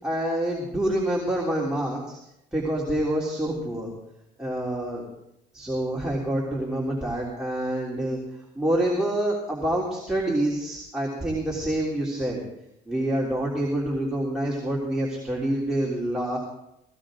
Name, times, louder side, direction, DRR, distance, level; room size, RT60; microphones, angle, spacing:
voice 1, 0.0-2.2 2.5-3.9 4.4-5.0 5.5-8.2 8.6-12.4 12.9-16.4, right 1 dB, 5° right, -4 dB, 3.5 m, -27 dB
18.0 x 16.5 x 3.8 m, 0.84 s
cardioid pair, 110°, 17 cm